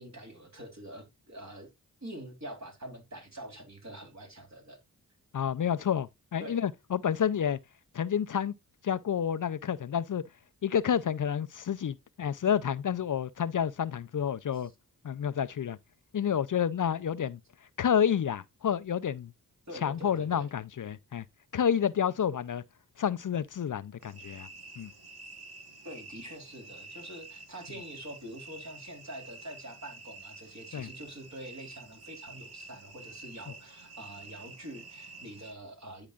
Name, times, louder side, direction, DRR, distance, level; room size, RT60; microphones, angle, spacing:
voice 1, 0.0-1.7 2.0-4.8 6.4-6.6 14.5-14.6 19.7-20.5 25.8-36.1, right 1 dB, 45° right, 3.5 m, -45 dB
voice 2, 5.3-7.6 7.9-8.5 8.8-10.2 10.6-14.7 15.0-15.8 16.1-17.4 17.8-19.3 19.8-21.2 21.5-22.6 23.0-24.5 24.8-24.9 30.7-30.9, left 8 dB, 55° left, 0.5 m, -29 dB
sound 1, 24.0-35.5, right 3 dB, 75° right, 1.6 m, -49 dB
10.5 x 4.9 x 2.4 m
cardioid pair, 45°, 38 cm